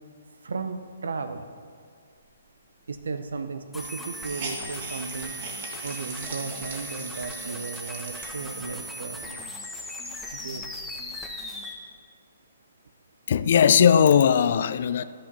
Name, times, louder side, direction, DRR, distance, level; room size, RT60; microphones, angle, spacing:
voice 1, 0.4-1.5 2.9-5.4 5.8-9.4 10.3-10.7, right 4 dB, 70° right, 0.9 m, -35 dB
Hiss, 2.9-3.0 3.3-3.4 3.8-8.8 9.4-9.5 9.9-11.2, right 3 dB, 50° right, 2.2 m, -41 dB
sound 1, 3.7-11.7, equal, 5° left, 1.5 m, -38 dB
voice 2, 13.3-15.0, left 8 dB, 55° left, 0.5 m, -18 dB
12.5 x 6.8 x 5.5 m
figure-of-eight pair, 130°, 0 cm